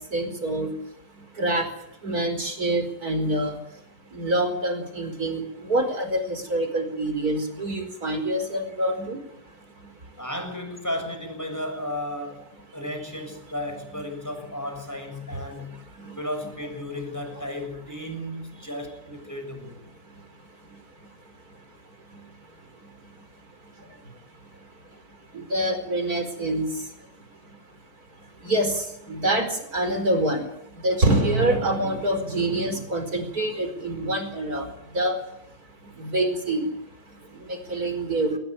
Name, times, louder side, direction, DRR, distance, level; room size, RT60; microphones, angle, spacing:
voice 1, 0.1-0.7 1.4-1.7 2.0-3.6 4.1-5.4 5.7-9.2 25.5-26.7 28.4-28.7 29.1-30.5 30.8-34.6 34.9-35.2 36.0-36.7 37.5-38.4, right 1 dB, 60° right, 8 dB, 5.2 m, -25 dB
voice 2, 10.2-15.8 16.2-19.8, left 1 dB, 10° left, 5 dB, 7.1 m, -34 dB
21.5 x 20.0 x 9.1 m, 0.75 s
omnidirectional pair, 1.8 m